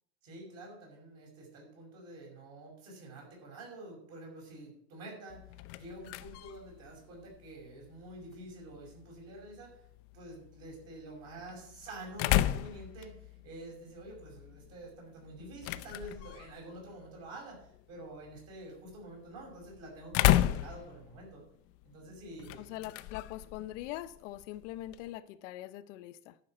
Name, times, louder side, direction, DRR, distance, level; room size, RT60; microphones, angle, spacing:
voice 1, 0.2-5.4 5.7-9.8 10.1-21.4 21.8-22.6, right 2 dB, 45° right, 6.0 m, -48 dB
sound 1, 5.3-25.2, left 14 dB, 40° left, 0.5 m, -36 dB
voice 2, 22.6-26.4, left 14 dB, 85° left, 0.9 m, -42 dB
12.0 x 6.1 x 7.8 m
cardioid pair, 170°, 36 cm